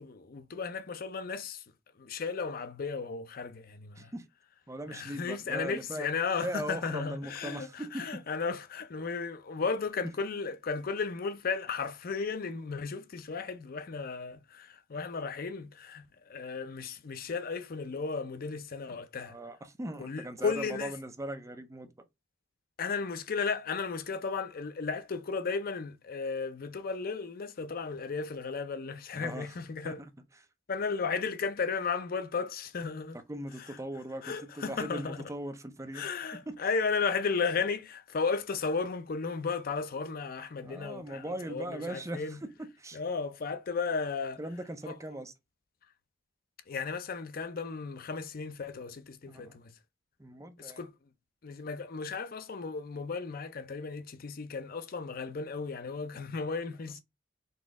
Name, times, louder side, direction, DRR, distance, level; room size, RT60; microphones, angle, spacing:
voice 1, 0.0-1.6 2.0-4.1 4.9-19.4 20.0-20.9 22.8-30.0 30.7-33.2 33.6-33.8 34.2-35.3 35.9-42.4 42.9-44.4 44.8-44.9 46.7-49.8 50.6-50.9 51.4-57.0, left 5 dB, 50° left, 0.5 m, -34 dB
voice 2, 4.0-4.3 4.7-6.1 6.4-8.2 19.2-22.1 29.1-29.5 29.8-30.1 33.3-36.0 36.5-36.6 40.6-42.4 42.8-43.0 44.4-45.3 49.3-49.6 50.2-50.8, right 1 dB, 15° right, 0.6 m, -39 dB
4.1 x 2.9 x 3.5 m
head